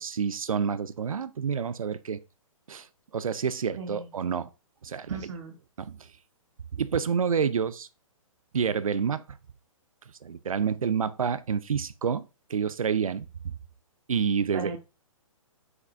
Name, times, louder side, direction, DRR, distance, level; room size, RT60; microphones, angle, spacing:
voice 1, 0.0-2.2 2.7-2.9 3.1-4.5 4.8-5.2 5.8-6.1 6.7-7.9 8.5-9.2 10.2-12.2 12.5-13.3 14.1-14.7, right 6 dB, 75° right, 0.6 m, -28 dB
voice 2, 3.8-4.1 5.1-5.5 14.5-14.8, right 4 dB, 55° right, 2.3 m, -37 dB
7.9 x 5.9 x 2.5 m
figure-of-eight pair, 125°, 18 cm